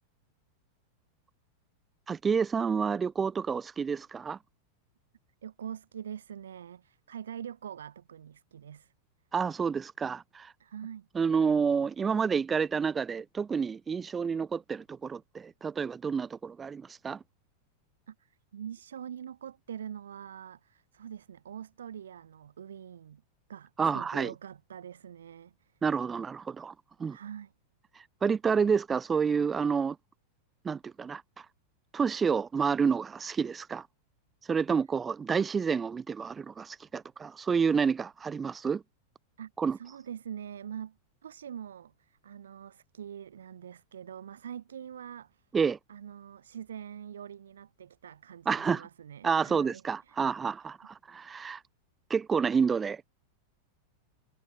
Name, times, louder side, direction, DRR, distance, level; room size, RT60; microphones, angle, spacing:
voice 1, 2.1-4.4 9.3-10.5 11.1-17.2 23.8-24.3 25.8-26.7 27.0-27.2 28.0-30.0 30.6-31.5 31.9-33.9 34.5-38.8 39.6-39.8 45.5-45.8 48.5-48.8 49.2-51.6 52.1-53.1, right 6 dB, 20° right, 0.8 m, -29 dB
voice 2, 5.4-8.9 10.6-11.1 18.1-23.2 23.5-25.7 27.1-27.5 34.7-34.8 39.4-41.0 41.2-45.5 45.9-50.2, right 9 dB, 65° right, 5.7 m, -44 dB
figure-of-eight pair, 90°, 0 cm